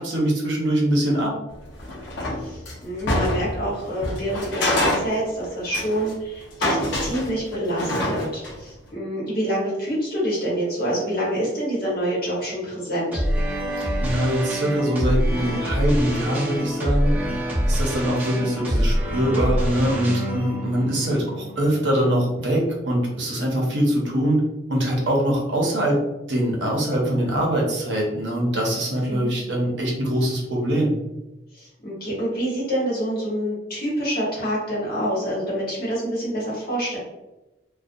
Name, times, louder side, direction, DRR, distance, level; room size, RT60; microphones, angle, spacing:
voice 1, 0.0-1.3 14.0-17.1 17.7-24.4 24.7-26.0 26.3-30.9, right 1 dB, 65° right, -2 dB, 0.7 m, -23 dB
sound 1, 1.7-3.7 4.0-6.1 6.4-8.6, left 1 dB, 65° left, 0.6 m, -26 dB
voice 2, 2.4-13.2 29.1-29.3 31.5-37.0, equal, 50° left, -6 dB, 1.1 m, -27 dB
sound 2, 13.1-22.3, equal, 10° right, 0.6 m, -25 dB
2.4 x 2.2 x 2.5 m, 1.0 s
head